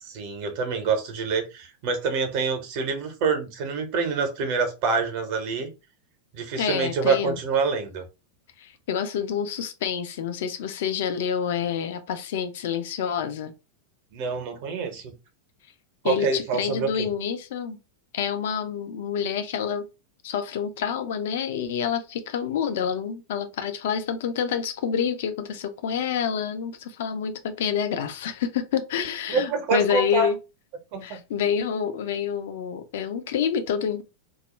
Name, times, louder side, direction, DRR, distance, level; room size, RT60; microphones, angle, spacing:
voice 1, 0.0-5.7 6.3-8.0 14.1-15.1 16.0-17.1 29.3-30.3 30.9-31.2, right 4 dB, 45° right, 0.7 m, -26 dB
voice 2, 6.6-7.4 8.6-13.5 16.0-17.8 18.1-19.9 20.2-30.4 31.0-34.0, left 8 dB, 55° left, 0.4 m, -28 dB
2.3 x 2.1 x 3.0 m
figure-of-eight pair, 90°, 0 cm